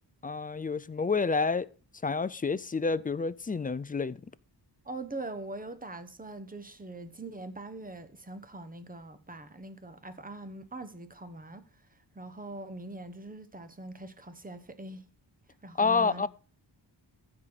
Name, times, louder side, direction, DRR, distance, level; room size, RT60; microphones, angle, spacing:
voice 1, 0.2-1.7 2.0-4.2 15.8-16.3, left 4 dB, 20° left, 0.4 m, -29 dB
voice 2, 4.8-15.1 15.6-16.2, right 2 dB, 20° right, 1.2 m, -42 dB
15.0 x 5.0 x 4.0 m
wide cardioid pair, 85°, 42 cm